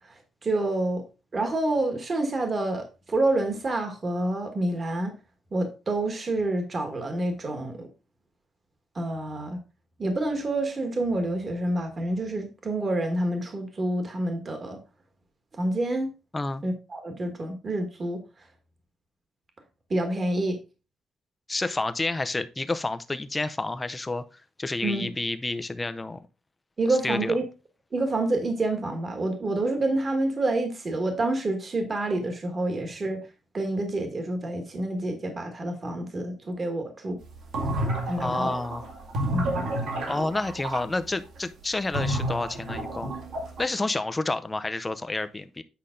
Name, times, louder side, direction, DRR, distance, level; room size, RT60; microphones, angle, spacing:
voice 1, 0.4-1.0 1.3-5.1 5.5-7.9 8.9-9.6 10.0-14.8 15.6-16.1 16.6-18.2 19.9-20.6 24.8-25.0 26.8-27.4 27.9-33.2 33.5-37.2 38.1-38.5 39.3-39.7, right 2 dB, 25° right, 1.4 m, -28 dB
voice 2, 21.5-26.2 26.9-27.4 38.2-38.9 40.1-43.1 43.6-45.6, left 2 dB, 15° left, 0.5 m, -29 dB
sound 1, 37.3-40.8 41.9-43.6, right 1 dB, 65° right, 2.0 m, -30 dB
8.6 x 5.6 x 3.7 m
cardioid pair, 180°, 0 cm